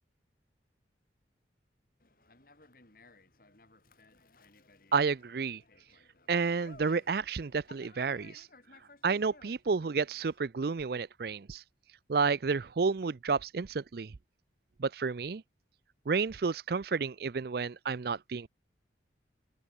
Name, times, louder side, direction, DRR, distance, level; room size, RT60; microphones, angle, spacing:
Conversation, 2.0-10.4, left 3 dB, 50° left, 3.0 m, -59 dB
voice 1, 4.9-5.6 6.3-8.5 9.0-11.6 12.1-14.1 14.8-15.4 16.1-18.5, right 5 dB, 55° right, 0.5 m, -31 dB
open air
head